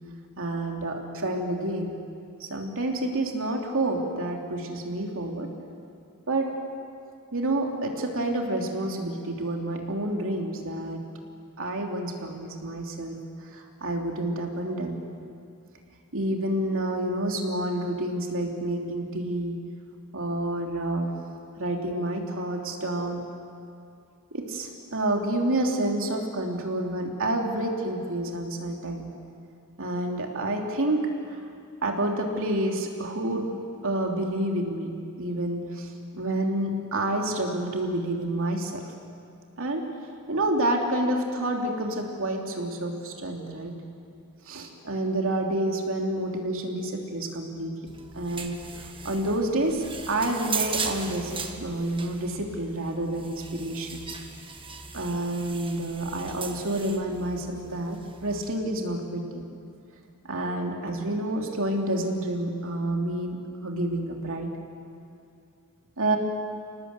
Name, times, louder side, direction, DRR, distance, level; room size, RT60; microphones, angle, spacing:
voice 1, 0.4-2.0 2.4-5.5 6.3-6.6 7.3-11.0 11.6-13.2 13.5-15.0 16.1-19.6 20.1-21.1 21.6-23.2 24.3-29.1 29.8-31.1 31.8-33.5 33.8-34.9 35.2-38.8 39.6-39.9 40.3-43.7 44.5-47.9 48.1-48.7 49.0-54.1 54.9-59.5 60.2-64.5 66.0-66.2, right 1 dB, 65° right, 2 dB, 3.0 m, -29 dB
sound 1, 47.9-58.6, right 5 dB, 25° right, 1.6 m, -38 dB
27.5 x 18.5 x 8.2 m, 2.5 s
head